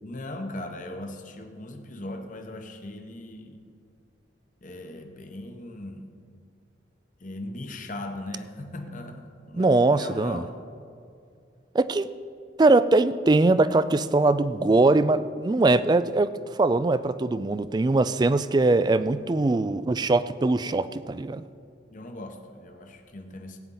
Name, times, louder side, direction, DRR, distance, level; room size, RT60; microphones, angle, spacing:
voice 1, 0.0-3.6 4.6-6.1 7.2-10.6 21.9-23.6, left 1 dB, 45° left, 5 dB, 0.9 m, -39 dB
voice 2, 9.6-10.4 11.7-12.1 12.6-16.3 16.6-21.4, right 2 dB, 20° right, 14 dB, 0.3 m, -21 dB
16.5 x 9.4 x 3.9 m, 2.4 s
head